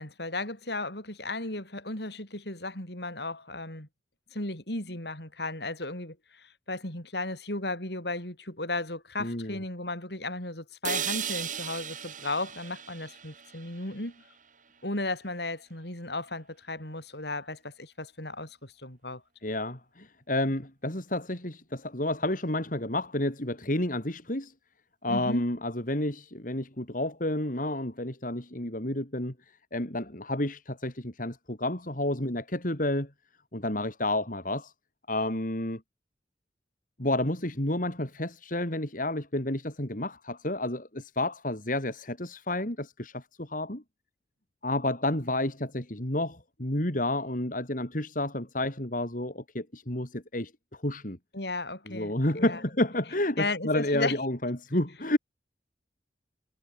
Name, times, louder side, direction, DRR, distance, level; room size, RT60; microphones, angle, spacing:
voice 1, 0.0-3.9 4.3-14.2 14.8-19.2 25.1-25.4 51.3-52.6 53.4-54.2, left 2 dB, 65° left, 7.7 m, -35 dB
voice 2, 9.2-9.6 19.4-24.5 25.0-29.3 29.7-33.1 33.5-34.7 35.1-35.8 37.0-43.8 44.6-51.2 51.9-55.2, left 1 dB, 45° left, 3.8 m, -30 dB
sound 1, 10.8-14.9, right 8 dB, 45° right, 6.8 m, -37 dB
head